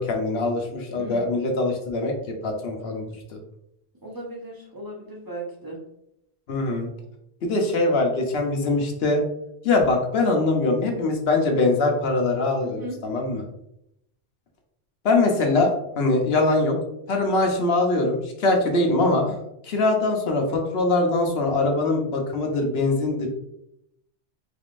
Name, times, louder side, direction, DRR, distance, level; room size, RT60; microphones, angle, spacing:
voice 1, 0.0-3.1 6.5-6.9 7.4-9.2 9.6-13.5 15.0-16.8 17.1-19.3 19.6-23.3, left 2 dB, 65° left, 3 dB, 0.9 m, -22 dB
voice 2, 4.0-5.8 12.6-13.0, right 1 dB, 20° right, -3 dB, 0.9 m, -36 dB
3.9 x 3.5 x 2.5 m, 0.79 s
omnidirectional pair, 1.2 m